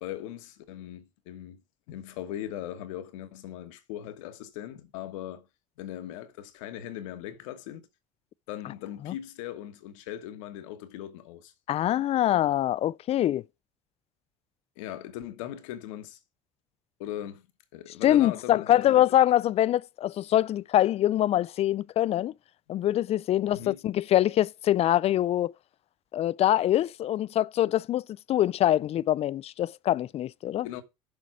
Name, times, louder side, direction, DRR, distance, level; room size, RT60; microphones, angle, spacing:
voice 1, 0.0-1.6 1.9-5.5 5.8-7.9 8.5-11.5 14.8-16.2 17.0-17.5 17.7-19.0 23.5-23.8 30.6-30.8, left 12 dB, 75° left, 1.3 m, -39 dB
voice 2, 11.7-13.4 18.0-22.3 22.7-25.5 26.1-30.7, left 12 dB, 40° left, 0.4 m, -24 dB
7.0 x 4.8 x 6.2 m
hypercardioid pair, 75°, 17 cm